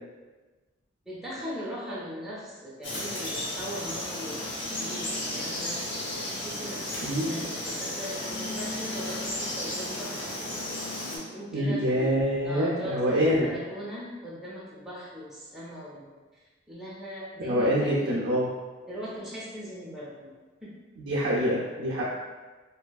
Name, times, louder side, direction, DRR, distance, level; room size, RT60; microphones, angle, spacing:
voice 1, 1.0-10.3 11.1-16.1 16.7-18.4 18.9-20.3 20.6-20.7, equal, ahead, -8 dB, 0.5 m, -39 dB
Frog, 2.8-11.2, left 1 dB, 70° left, 0.7 m, -34 dB
voice 2, 11.5-13.5 17.4-18.5 21.0-22.0, equal, 65° right, -6 dB, 0.4 m, -25 dB
2.6 x 2.3 x 2.3 m, 1.3 s
head